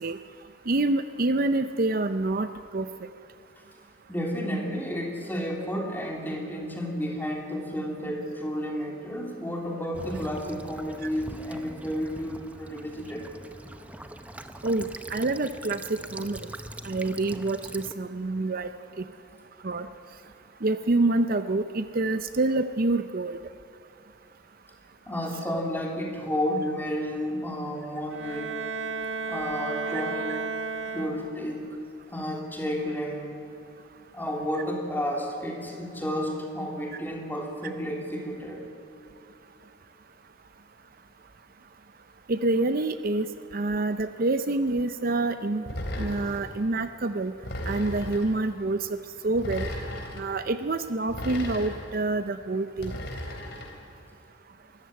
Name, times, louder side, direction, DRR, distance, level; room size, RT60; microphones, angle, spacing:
voice 1, 0.7-2.5 2.7-2.9 14.6-16.4 16.8-18.7 19.6-19.9 20.6-23.4 42.3-43.3 43.5-45.6 46.0-47.3 47.7-48.9 49.2-49.7 50.2-52.9, right 2 dB, 45° right, 10 dB, 0.6 m, -27 dB
voice 2, 4.1-13.3 25.1-28.6 29.2-30.4 30.9-31.8 32.1-33.4 34.1-38.7, equal, 10° left, 0 dB, 3.2 m, -31 dB
Child speech kid speaking / Bird vocalization bird call bird song / Stream, 9.9-17.9, right 1 dB, 5° right, 0.7 m, -42 dB
Bowed string instrument, 28.1-31.6, right 4 dB, 70° right, 1.7 m, -33 dB
sound 1, 45.7-46.5 47.4-48.3 49.3-50.2 51.1-52.0 52.8-53.7, left 1 dB, 55° left, 3.7 m, -35 dB
24.0 x 14.0 x 9.0 m, 2.8 s
head